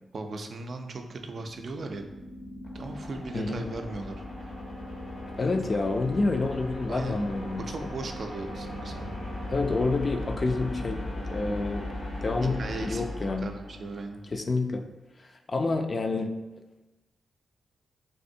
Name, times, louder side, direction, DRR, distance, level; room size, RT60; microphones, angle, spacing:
voice 1, 0.1-2.1 2.7-4.5 6.9-7.2 7.7-9.1 12.6-14.2, right 3 dB, 60° right, 5 dB, 0.3 m, -37 dB
sound 1, 1.2-14.2, left 1 dB, 80° left, 0.8 m, -38 dB
voice 2, 3.3-3.7 5.4-7.9 9.5-11.0 11.3-11.9 12.2-13.5 14.3-14.8 15.5-16.3, left 3 dB, 45° left, 6 dB, 0.3 m, -28 dB
3.5 x 2.6 x 2.6 m, 1.1 s
supercardioid pair, 45°, 0 cm